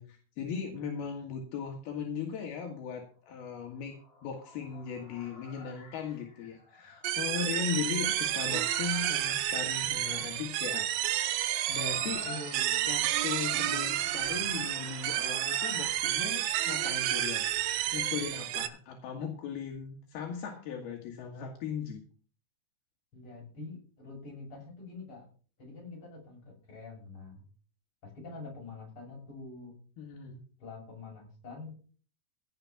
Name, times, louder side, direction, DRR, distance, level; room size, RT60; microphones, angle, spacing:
voice 1, 0.0-11.1 11.7-12.4 12.9-17.5 17.9-22.0 30.0-30.4, left 6 dB, 75° left, 2 dB, 3.6 m, -38 dB
sound 1, 3.7-17.0, left 3 dB, 50° left, 5.1 m, -51 dB
sound 2, 7.0-18.7, right 13 dB, 75° right, 2.6 m, -31 dB
voice 2, 12.0-12.9 23.1-25.3 25.6-27.4 28.0-29.7 30.6-31.9, left 3 dB, 35° left, 0 dB, 7.3 m, -45 dB
15.5 x 7.0 x 5.8 m, 0.41 s
omnidirectional pair, 4.5 m